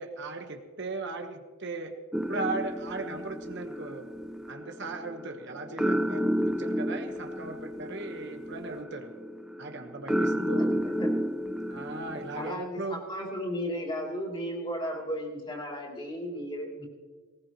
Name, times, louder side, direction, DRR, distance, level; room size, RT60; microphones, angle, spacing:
voice 1, 0.0-1.9 2.3-4.1 4.5-9.1 9.6-10.7 11.7-13.0, right 3 dB, 55° right, 5 dB, 1.2 m, -37 dB
sound 1, 2.1-12.5, equal, 5° right, 0.4 m, -32 dB
voice 2, 12.3-16.9, equal, 25° left, -1 dB, 3.0 m, -35 dB
19.0 x 19.0 x 3.0 m, 1.5 s
head